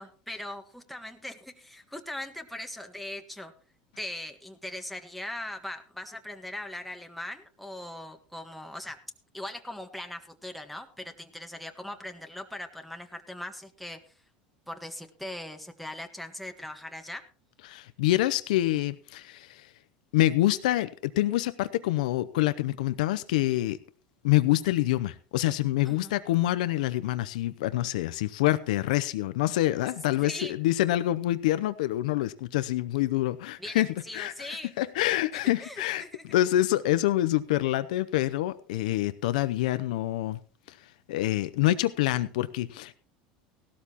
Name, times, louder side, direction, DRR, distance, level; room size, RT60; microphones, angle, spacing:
voice 1, 0.0-3.5 4.0-9.0 9.3-14.1 14.7-17.2 25.8-26.1 30.2-30.5 33.6-34.7 35.6-36.2, left 1 dB, ahead, 4 dB, 1.4 m, -40 dB
voice 2, 17.7-19.7 20.1-23.8 24.2-33.9 34.1-40.4 40.7-40.8 41.1-42.9, left 15 dB, 80° left, 13 dB, 0.7 m, -26 dB
17.0 x 13.0 x 3.0 m, 0.40 s
hypercardioid pair, 95°, 4 cm